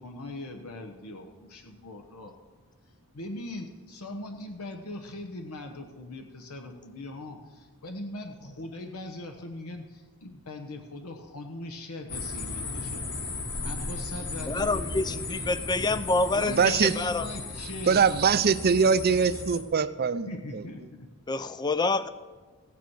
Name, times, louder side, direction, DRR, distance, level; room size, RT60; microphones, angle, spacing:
voice 1, 0.0-2.3 3.1-13.0 13.6-14.7 14.9-15.5 16.3-18.0 20.3-21.1, left 1 dB, 85° left, 1.0 m, -40 dB
sound 1, 12.1-19.6, left 3 dB, 50° left, 1.6 m, -36 dB
voice 2, 14.4-17.3 21.3-22.1, left 3 dB, 20° left, 0.4 m, -27 dB
voice 3, 16.5-16.9 17.9-20.3 20.5-20.6, right 6 dB, 45° right, 0.5 m, -22 dB
15.5 x 9.3 x 4.7 m
head